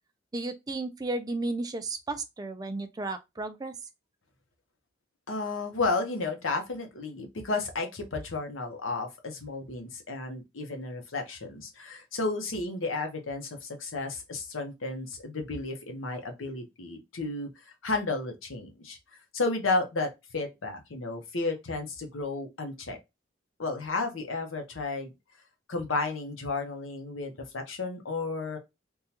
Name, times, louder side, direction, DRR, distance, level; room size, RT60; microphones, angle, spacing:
voice 1, 0.3-3.7, right 2 dB, 20° right, 0.3 m, -33 dB
voice 2, 5.3-19.0 19.3-23.0 23.6-25.1 25.7-28.6, left 3 dB, 85° left, 0.9 m, -32 dB
3.6 x 2.3 x 2.8 m
head